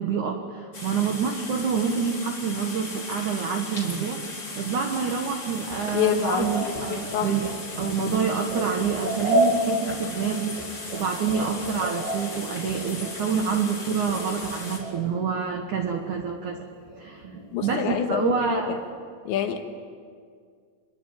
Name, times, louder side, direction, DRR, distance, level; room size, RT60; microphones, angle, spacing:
voice 1, 0.0-4.2 4.6-7.5 7.8-16.6 17.0-17.2 17.6-18.8, right 6 dB, 80° right, 4 dB, 1.7 m, -27 dB
sound 1, 0.7-14.8, left 3 dB, 25° left, 4.3 m, -37 dB
sound 2, 5.7-15.2 15.5-16.2 16.5-18.8, right 1 dB, 55° right, 4.6 m, -31 dB
voice 2, 5.9-6.5 7.1-7.3 17.5-18.8 19.3-19.7, left 8 dB, 70° left, 5 dB, 3.5 m, -26 dB
26.5 x 22.0 x 9.0 m, 2.1 s
omnidirectional pair, 5.9 m